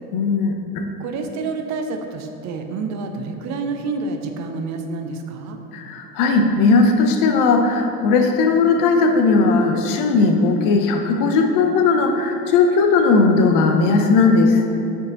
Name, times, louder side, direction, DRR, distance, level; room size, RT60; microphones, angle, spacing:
voice 1, 0.1-0.8 5.7-14.6, left 4 dB, 40° left, 4 dB, 0.8 m, -17 dB
voice 2, 1.0-5.6, right 3 dB, 35° right, 5 dB, 0.7 m, -28 dB
8.7 x 3.9 x 3.9 m, 2.8 s
hypercardioid pair, 85°, 48 cm